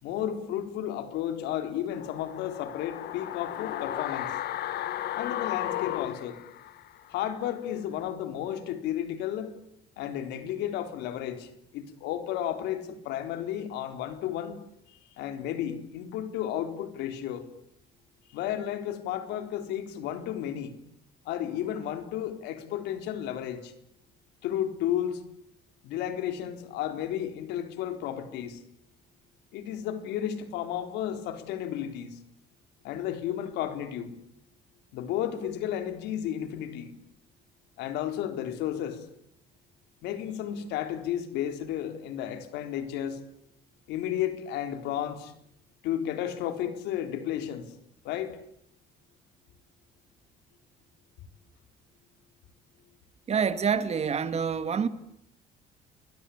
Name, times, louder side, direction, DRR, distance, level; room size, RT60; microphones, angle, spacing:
voice 1, 0.0-4.3 5.1-6.4 7.1-9.6 10.0-14.6 15.2-17.5 18.3-20.8 21.3-23.7 24.4-25.2 25.8-28.6 29.5-32.2 32.8-34.2 34.9-37.0 37.8-39.1 40.0-43.2 43.9-45.3 45.8-47.7 48.0-48.4, left 10 dB, 90° left, 4.0 m, -33 dB
sound 1, 1.9-7.1 7.4-7.5, left 13 dB, 70° left, 1.9 m, -34 dB
voice 2, 53.3-54.9, right 6 dB, 40° right, 2.3 m, -27 dB
29.5 x 22.5 x 8.6 m
cardioid pair, 110°, 17 cm